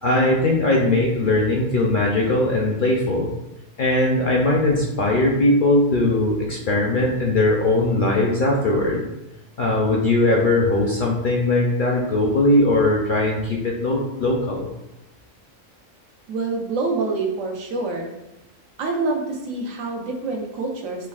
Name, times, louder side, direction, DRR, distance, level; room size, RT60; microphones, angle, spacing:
voice 1, 0.0-3.3 3.8-9.1 9.6-14.7, left 2 dB, 60° left, -2 dB, 0.5 m, -20 dB
voice 2, 16.3-18.1 18.8-21.1, right 3 dB, 85° right, 0 dB, 1.1 m, -26 dB
5.8 x 2.1 x 2.3 m, 0.91 s
omnidirectional pair, 1.3 m